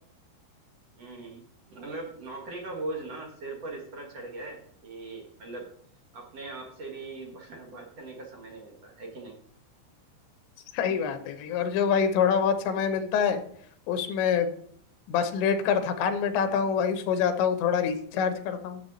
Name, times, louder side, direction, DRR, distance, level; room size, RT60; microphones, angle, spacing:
voice 1, 1.0-5.7 6.1-9.4, right 2 dB, 50° right, 0 dB, 2.0 m, -40 dB
voice 2, 10.7-13.4 13.9-14.5 15.1-18.8, left 7 dB, 85° left, 7 dB, 3.3 m, -26 dB
12.5 x 7.4 x 4.1 m, 0.63 s
omnidirectional pair, 5.1 m